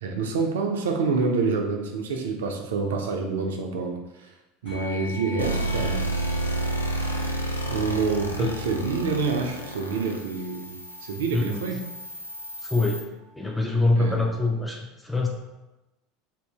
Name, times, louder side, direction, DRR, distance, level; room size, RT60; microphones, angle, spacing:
voice 1, 0.0-4.3 4.6-6.1 7.7-11.8 14.0-14.2, right 4 dB, 70° right, 3 dB, 0.4 m, -27 dB
sound 1, 4.7-14.3, left 2 dB, 75° left, 1.4 m, -46 dB
sound 2, 5.4-13.0, right 1 dB, 90° left, 0.3 m, -31 dB
voice 2, 11.3-11.6 12.6-13.1 13.4-15.3, left 2 dB, 5° left, 0 dB, 0.4 m, -24 dB
2.7 x 2.6 x 3.4 m, 1.0 s
figure-of-eight pair, 75°, 0 cm